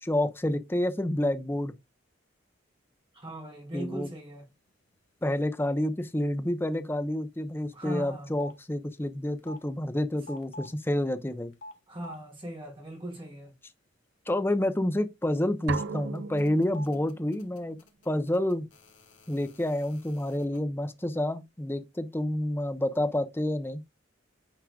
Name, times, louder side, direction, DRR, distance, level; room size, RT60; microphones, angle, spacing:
voice 1, 0.0-1.7 3.7-4.1 5.2-11.5 14.3-17.8 18.1-18.7 19.3-23.8, left 1 dB, 10° left, 0.6 m, -29 dB
voice 2, 3.1-4.5 7.7-8.3 11.9-13.5, right 1 dB, 30° right, 3.2 m, -39 dB
sound 1, 7.3-7.8 8.1-8.6 9.4-9.6 10.2-10.7 11.5-12.2 15.6-15.9 16.1-20.6, left 1 dB, 70° left, 1.8 m, -47 dB
sound 2, 15.7-17.5, right 5 dB, 70° right, 0.5 m, -37 dB
9.2 x 4.9 x 2.3 m
head